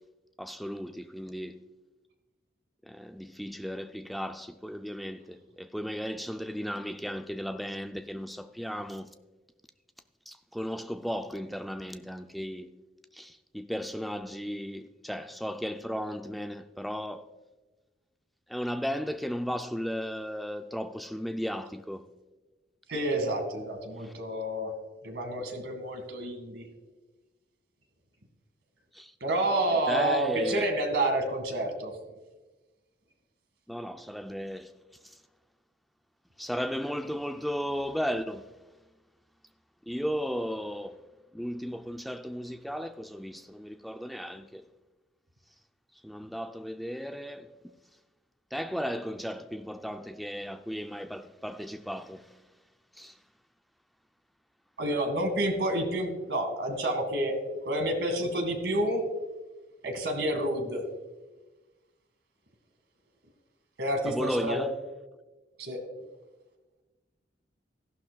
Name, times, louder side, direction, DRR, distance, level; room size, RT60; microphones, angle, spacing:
voice 1, 0.4-1.6 2.9-9.2 10.3-12.7 13.1-17.3 18.5-22.1 24.0-24.1 28.9-29.1 29.7-30.6 33.7-34.7 36.4-38.5 39.9-41.0 41.3-44.6 46.0-47.5 48.5-52.3 53.0-53.1 64.1-64.7, equal, ahead, 0.4 m, -35 dB
voice 2, 22.9-24.7 25.0-26.6 29.2-31.9 54.8-57.3 57.6-59.0 59.8-60.8 63.8-64.6 65.6-65.8, right 1 dB, 80° right, 1.9 m, -29 dB
14.5 x 11.5 x 2.3 m
head